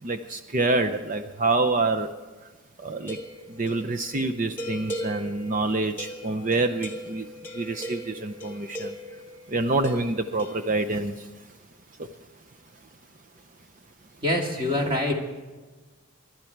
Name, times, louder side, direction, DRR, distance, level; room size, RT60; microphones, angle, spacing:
voice 1, 0.0-2.1 2.4-2.5 2.8-3.2 3.5-7.3 7.5-9.2 9.5-11.3 12.0-12.1 14.6-14.7, right 2 dB, 40° right, 8 dB, 0.6 m, -27 dB
sound 1, 3.0-9.3 9.8-10.7, equal, 10° left, 1.9 m, -38 dB
voice 2, 14.2-15.1, left 1 dB, 25° right, 0 dB, 2.2 m, -25 dB
25.0 x 12.0 x 4.6 m, 1.3 s
head